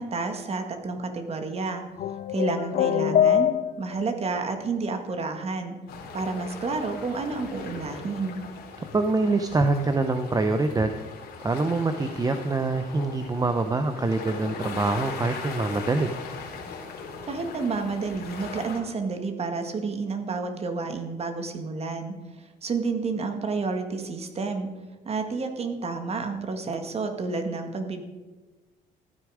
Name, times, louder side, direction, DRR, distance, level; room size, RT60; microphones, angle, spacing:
voice 1, 0.0-1.8 2.3-3.5 3.8-5.8 6.1-8.4 17.3-22.1 22.6-24.7 25.1-28.0, right 4 dB, 35° right, 6 dB, 1.9 m, -30 dB
sound 1, 2.0-4.1, left 10 dB, 50° left, 0.5 m, -23 dB
sound 2, 5.9-18.8, left 5 dB, 70° left, 2.8 m, -39 dB
voice 2, 8.9-11.0 11.4-16.1, right 3 dB, 20° right, 7 dB, 0.7 m, -25 dB
14.5 x 9.7 x 5.0 m, 1.2 s
cardioid pair, 110°, 17 cm